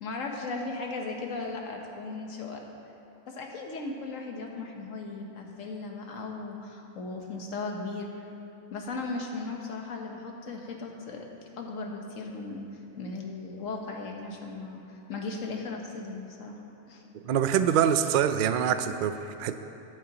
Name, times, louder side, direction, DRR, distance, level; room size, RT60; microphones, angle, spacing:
voice 1, 0.0-2.6 3.3-8.1 8.7-11.3 11.6-12.7 13.0-16.6 16.9-17.0, left 3 dB, 70° left, 1 dB, 1.5 m, -37 dB
voice 2, 17.1-19.6, right 8 dB, 85° right, 9 dB, 0.4 m, -25 dB
20.5 x 7.8 x 3.0 m, 2.9 s
omnidirectional pair, 1.4 m